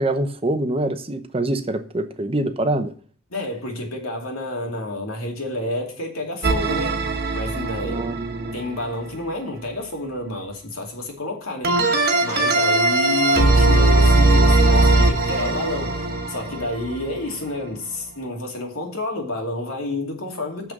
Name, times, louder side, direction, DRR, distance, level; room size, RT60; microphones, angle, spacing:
voice 1, 0.0-2.9 7.9-8.6, right 1 dB, 25° right, 0.7 m, -25 dB
voice 2, 3.3-7.0 7.3-8.1 8.5-11.9 12.2-20.7, left 2 dB, 80° left, 2.6 m, -29 dB
sound 1, 6.4-8.6 11.6-17.3, right 2 dB, 50° right, 1.3 m, -19 dB
6.9 x 6.2 x 7.3 m
head